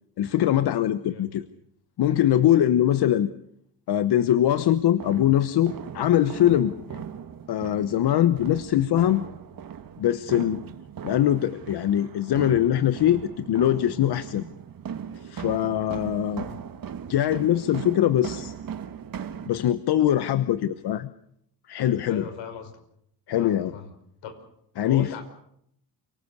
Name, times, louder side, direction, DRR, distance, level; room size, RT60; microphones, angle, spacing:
voice 1, 0.2-1.5 2.0-3.3 3.9-6.7 7.5-9.2 10.0-10.6 11.0-14.4 15.2-16.5 17.1-18.5 19.5-21.1 21.7-22.2 23.3-23.7 24.8-25.1, left 11 dB, 65° left, 13 dB, 1.1 m, -22 dB
voice 2, 1.1-1.4 6.9-7.0 16.4-16.6 22.1-22.8 23.3-23.9 24.2-24.5 24.8-25.2, left 7 dB, 80° left, 8 dB, 4.9 m, -39 dB
sound 1, 4.5-19.5, right 8 dB, 50° right, 1.8 m, -39 dB
28.5 x 19.0 x 6.8 m, 0.73 s
supercardioid pair, 75°, 43 cm